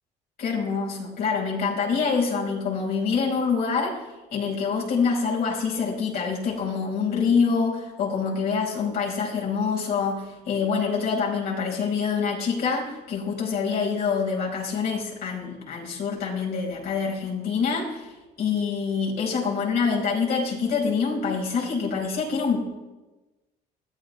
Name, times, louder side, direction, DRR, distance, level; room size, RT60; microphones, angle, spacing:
voice 1, 0.4-4.0 4.3-18.1 18.4-22.6, left 5 dB, 65° left, -2 dB, 4.8 m, -26 dB
20.5 x 14.0 x 3.3 m, 1.1 s
cardioid pair, 110°, 17 cm